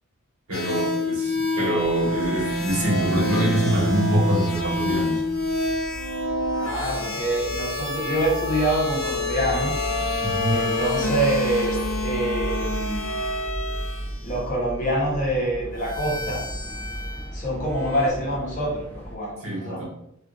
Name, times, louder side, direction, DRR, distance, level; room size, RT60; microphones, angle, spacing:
sound 1, 0.5-14.1 15.7-17.3 17.7-18.1, left 1 dB, 65° left, 0.5 m, -27 dB
voice 1, 0.5-5.2 10.2-10.5 19.4-19.8, equal, 75° right, -3 dB, 1.1 m, -25 dB
sound 2, 1.8-19.2, equal, 10° left, 0.3 m, -36 dB
voice 2, 6.6-9.7 10.4-13.1 14.2-16.5 17.3-19.8, right 1 dB, 35° left, -5 dB, 0.9 m, -26 dB
2.5 x 2.4 x 2.5 m, 0.78 s
head